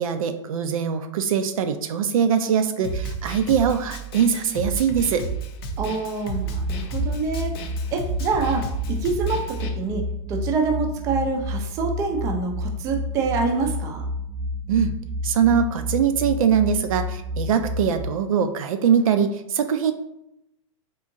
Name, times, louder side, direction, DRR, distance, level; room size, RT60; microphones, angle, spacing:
voice 1, 0.0-5.3 14.7-14.9 15.2-19.9, right 7 dB, 80° right, 8 dB, 0.4 m, -22 dB
Snare drum, 2.8-9.7, right 3 dB, 45° left, 0.5 m, -32 dB
voice 2, 5.8-7.5 7.9-14.1, right 4 dB, 20° right, 3 dB, 0.4 m, -26 dB
sound 1, 6.3-18.1, left 1 dB, 50° right, 0.8 m, -30 dB
3.7 x 2.7 x 2.6 m, 0.82 s
supercardioid pair, 155°, 17 cm